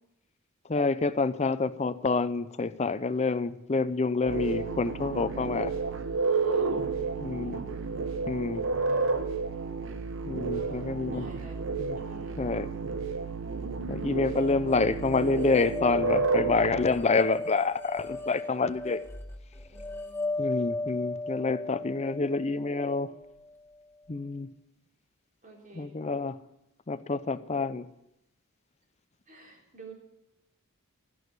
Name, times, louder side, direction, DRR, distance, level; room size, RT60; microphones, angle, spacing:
voice 1, 0.7-5.7 7.2-7.6 8.3-8.6 10.3-11.3 11.8-12.0 12.4-12.7 13.9-19.0 20.4-23.1 24.1-24.5 25.7-26.4 26.9-27.8, left 3 dB, 30° left, 13 dB, 0.5 m, -28 dB
sound 1, 4.3-16.9, right 4 dB, 60° right, 0.9 m, -31 dB
voice 2, 6.9-7.9 8.5-9.1 10.5-11.6 11.9-12.4 14.2-14.3 19.7-20.4 25.4-25.9 29.3-29.9, right 2 dB, 35° right, -1 dB, 3.4 m, -50 dB
sound 2, 14.3-23.5, left 2 dB, 10° left, 1.3 m, -36 dB
16.0 x 6.3 x 9.6 m, 0.85 s
head